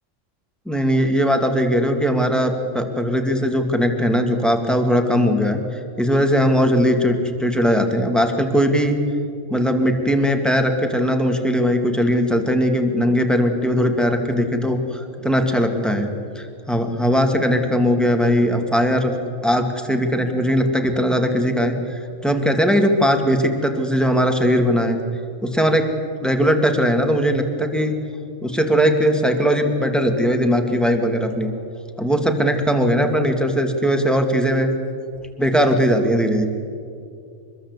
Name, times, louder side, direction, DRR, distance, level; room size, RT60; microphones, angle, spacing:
voice 1, 0.7-9.0 9.5-19.1 19.4-25.0 25.4-25.9 26.2-28.0 28.4-31.6 32.0-34.7 35.4-36.5, equal, ahead, 4 dB, 2.0 m, -19 dB
25.0 x 21.0 x 8.1 m, 2.4 s
omnidirectional pair, 1.4 m